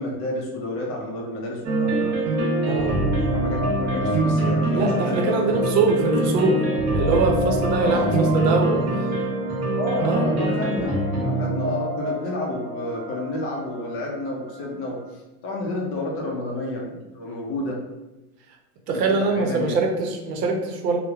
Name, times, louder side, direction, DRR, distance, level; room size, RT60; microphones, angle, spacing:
voice 1, 0.0-2.1 3.3-5.9 7.8-8.6 9.8-17.8 18.9-19.8, left 2 dB, 30° left, -1 dB, 0.4 m, -30 dB
sound 1, 1.6-14.6, right 1 dB, 35° right, 0.8 m, -24 dB
voice 2, 2.7-3.0 4.7-6.6 6.9-8.8 10.0-10.3 18.9-21.0, right 3 dB, 90° right, 2 dB, 0.7 m, -23 dB
3.0 x 2.1 x 2.3 m, 1.1 s
supercardioid pair, 120°, 48 cm